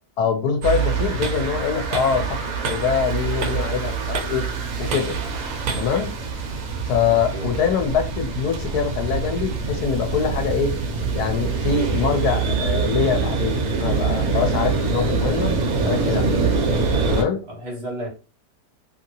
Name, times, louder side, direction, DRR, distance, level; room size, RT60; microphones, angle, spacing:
voice 1, 0.2-4.4 4.8-5.1 5.7-6.1 6.8-10.7 11.1-15.5 15.9-16.4 17.1-17.4, left 6 dB, 70° left, 1.1 m, -24 dB
sound 1, 0.6-17.2, right 4 dB, 65° right, 0.9 m, -24 dB
voice 2, 7.1-7.5 17.5-18.1, right 1 dB, 45° right, 1.2 m, -32 dB
2.8 x 2.8 x 2.7 m
omnidirectional pair, 1.8 m